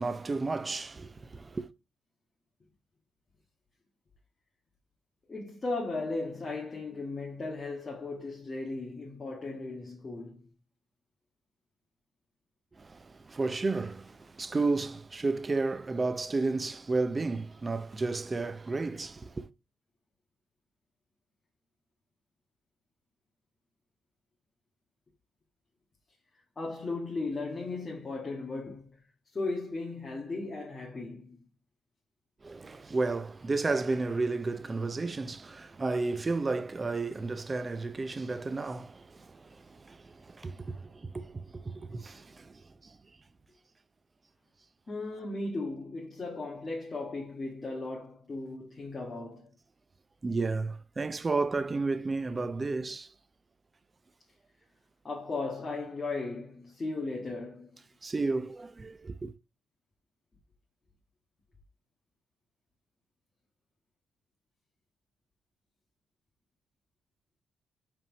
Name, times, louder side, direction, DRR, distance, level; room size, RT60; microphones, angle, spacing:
voice 1, 0.0-1.7 12.7-19.5 32.4-43.0 50.2-53.1 58.0-59.3, right 3 dB, 25° right, 0.6 m, -32 dB
voice 2, 5.3-10.5 26.5-29.0 29.3-31.4 44.9-49.5 55.0-57.8, left 3 dB, 30° left, 1.7 m, -36 dB
5.4 x 3.6 x 5.3 m
cardioid pair, 90°, 0 cm